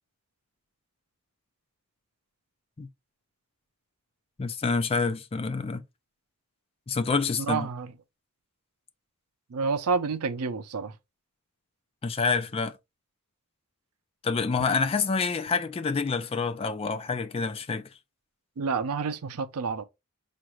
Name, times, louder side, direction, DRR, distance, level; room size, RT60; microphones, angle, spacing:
voice 1, 4.4-5.8 6.9-7.7 12.0-12.7 14.2-17.9, left 4 dB, 25° left, 0.3 m, -27 dB
voice 2, 7.4-7.9 9.5-10.9 18.6-19.8, right 5 dB, 85° right, 0.5 m, -29 dB
4.8 x 2.6 x 3.0 m
head